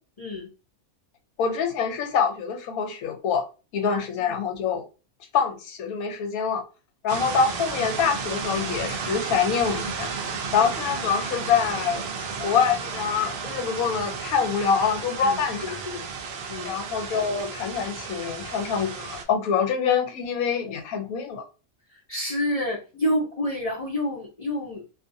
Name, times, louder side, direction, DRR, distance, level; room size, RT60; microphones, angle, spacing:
voice 1, 0.2-0.5 3.9-4.3 15.2-16.1 16.5-16.8 22.1-24.8, left 1 dB, 50° left, -4 dB, 0.4 m, -29 dB
voice 2, 1.4-3.4 3.7-4.8 5.3-6.6 7.0-10.1 10.5-12.1 12.4-15.8 16.6-21.4, left 6 dB, 75° left, 7 dB, 1.1 m, -25 dB
sound 1, 7.1-19.2, right 5 dB, 70° right, 0.6 m, -33 dB
2.5 x 2.5 x 2.6 m, 0.32 s
omnidirectional pair, 1.5 m